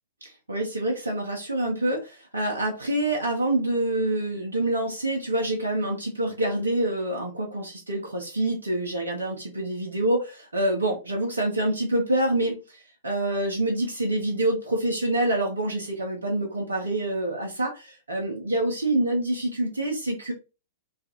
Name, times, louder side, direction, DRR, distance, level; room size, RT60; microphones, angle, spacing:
voice 1, 0.2-20.3, right 1 dB, 75° right, 0 dB, 0.6 m, -26 dB
2.4 x 2.4 x 2.8 m, 0.30 s
figure-of-eight pair, 105°, 0 cm